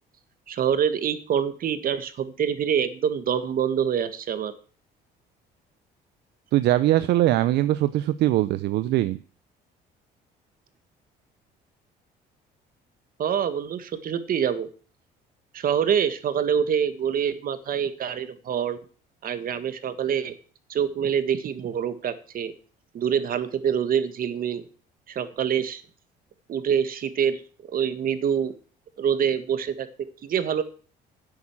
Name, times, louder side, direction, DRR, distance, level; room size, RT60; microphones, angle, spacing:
voice 1, 0.5-4.5 13.2-14.7 15.5-18.8 19.2-20.3 20.7-22.5 22.9-24.6 25.1-25.8 26.5-27.4 27.7-28.5 29.0-30.6, right 8 dB, 55° right, 12 dB, 1.7 m, -25 dB
voice 2, 6.5-9.2, right 14 dB, 75° right, 14 dB, 0.6 m, -21 dB
11.0 x 8.5 x 7.3 m, 0.40 s
cardioid pair, 95°, 18 cm